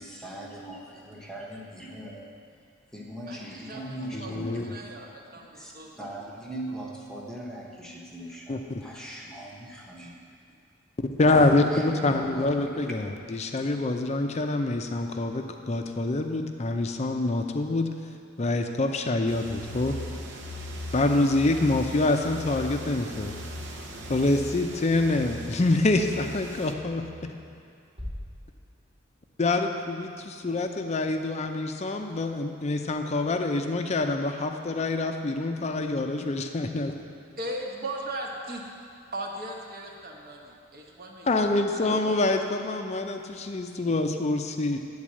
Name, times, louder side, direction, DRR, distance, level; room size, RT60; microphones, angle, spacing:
voice 1, 0.0-2.3 2.9-4.9 5.5-5.7 6.0-10.2 11.5-12.9, right 1 dB, 5° left, -3 dB, 0.9 m, -40 dB
voice 2, 3.3-6.0 37.4-38.6 39.1-42.6, right 1 dB, 50° right, 0 dB, 1.1 m, -39 dB
voice 3, 4.3-4.6 8.5-8.8 11.2-17.9 18.4-20.0 20.9-23.3 24.1-27.0 29.4-36.9 41.3-44.8, left 2 dB, 35° left, 5 dB, 0.5 m, -26 dB
sound 1, 19.3-26.7, right 2 dB, 65° right, 0.8 m, -43 dB
sound 2, 19.3-27.1, left 2 dB, 80° right, 1.3 m, -41 dB
sound 3, 28.0-29.9, left 1 dB, 30° right, 1.2 m, -42 dB
10.0 x 4.0 x 7.5 m, 2.5 s
head